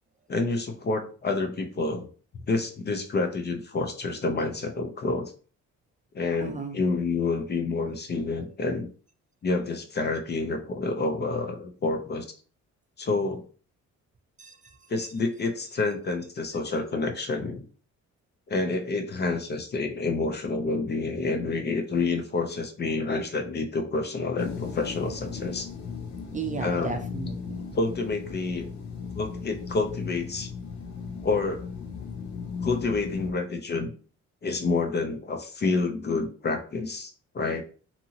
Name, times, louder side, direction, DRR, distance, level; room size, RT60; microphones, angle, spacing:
voice 1, 0.3-2.1 2.5-5.3 6.1-8.9 9.4-12.2 13.0-13.4 14.9-17.6 18.5-25.7 26.6-27.0 27.7-28.7 29.1-30.5 31.2-31.7 32.6-33.9 34.4-37.6, left 3 dB, 35° left, 4 dB, 0.6 m, -28 dB
voice 2, 6.4-6.8 14.4-14.6 26.3-27.6, right 5 dB, 25° right, 4 dB, 0.5 m, -34 dB
sound 1, 24.4-33.3, left 5 dB, 65° left, 0.8 m, -37 dB
2.7 x 2.6 x 2.8 m, 0.40 s
cardioid pair, 90°, 30 cm